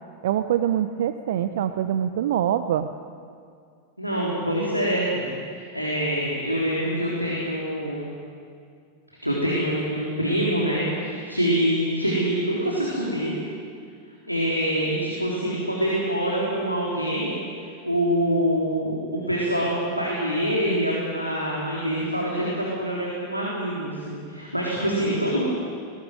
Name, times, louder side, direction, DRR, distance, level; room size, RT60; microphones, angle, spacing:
voice 1, 0.2-2.9, right 10 dB, 55° right, 10 dB, 0.8 m, -24 dB
voice 2, 4.0-8.1 9.2-13.4 14.3-17.4 17.8-25.4, equal, 90° right, -5 dB, 3.7 m, -25 dB
20.0 x 18.5 x 9.2 m, 2.2 s
figure-of-eight pair, 90°, 0 cm